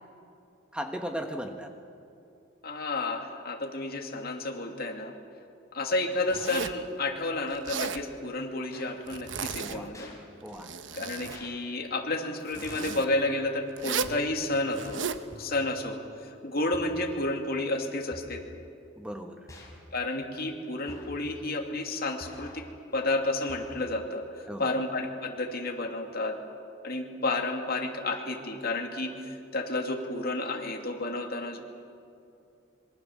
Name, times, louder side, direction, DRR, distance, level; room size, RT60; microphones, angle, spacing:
voice 1, 0.7-1.7 9.6-9.9 10.4-10.7 19.0-19.5 24.5-24.7, equal, 5° right, 5 dB, 1.1 m, -37 dB
voice 2, 2.6-5.1 5.7-10.1 10.9-15.0 15.4-18.4 19.9-22.7 22.9-24.2 24.6-26.4 26.8-31.6, left 2 dB, 50° left, 3 dB, 2.7 m, -31 dB
Zipper (clothing), 6.3-6.9 7.5-8.0 9.1-9.8 10.4-11.4 12.5-13.1 13.8-14.2 14.7-15.2, right 6 dB, 70° right, 1.0 m, -35 dB
sound 1, 8.7-8.9 9.9-10.2 11.3-11.5 12.7-13.0 14.1-14.5 15.3-15.7 16.7-17.2 18.1-18.5 19.5-19.8 20.9-21.3 22.2-22.7 23.5-24.0, left 1 dB, 15° left, 4.9 m, -47 dB
26.0 x 24.0 x 7.4 m, 2.6 s
head